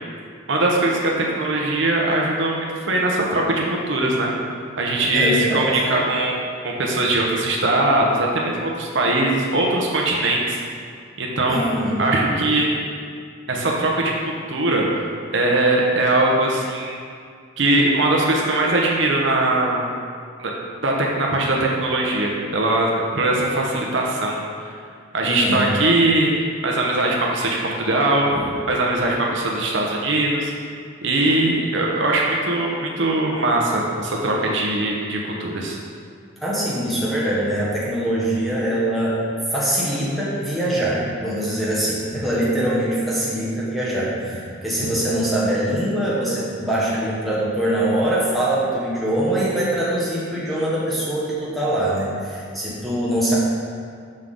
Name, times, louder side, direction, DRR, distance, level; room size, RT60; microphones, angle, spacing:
voice 1, 0.5-4.3 4.8-6.3 6.6-10.6 11.2-11.7 12.0-12.7 13.5-14.8 15.3-17.0 17.6-19.8 20.4-20.5 20.8-24.4 24.7-24.8 25.1-30.5 31.0-35.8, right 2 dB, 65° right, -2 dB, 0.8 m, -21 dB
voice 2, 5.1-5.7 11.5-12.0 25.2-25.7 28.3-28.5 36.4-39.2 39.5-53.4, right 1 dB, ahead, -8 dB, 1.2 m, -23 dB
6.4 x 5.8 x 3.7 m, 2.2 s
head